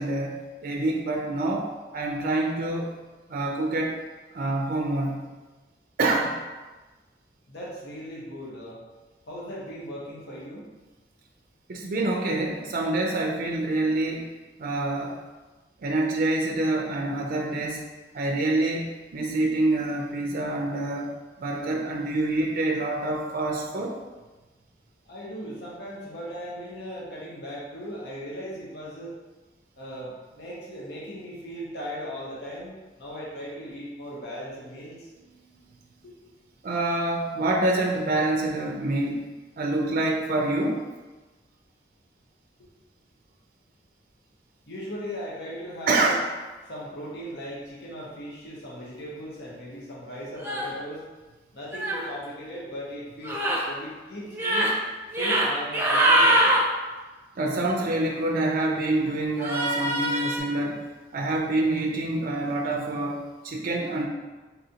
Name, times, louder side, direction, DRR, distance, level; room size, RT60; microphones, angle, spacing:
voice 1, 0.0-1.7 1.9-2.9 3.3-4.0 4.3-5.3 6.0-6.4 11.7-14.3 14.6-15.1 15.8-17.8 18.1-21.1 21.4-24.0 36.6-39.2 39.6-40.8 45.9-46.2 57.4-60.8 61.1-64.1, right 2 dB, 50° right, 0 dB, 0.4 m, -26 dB
voice 2, 7.5-8.8 9.3-10.7 25.1-29.1 29.8-35.1 36.0-36.1 44.7-46.2 46.7-51.0 51.5-54.7 55.2-56.5, equal, 65° left, -6 dB, 0.9 m, -38 dB
sound 1, 50.4-50.7 51.7-52.0 53.2-53.6 54.3-54.7 55.1-55.5 55.7-56.6 59.4-60.4, right 1 dB, 10° right, 0.6 m, -23 dB
4.1 x 3.9 x 2.8 m, 1.2 s
head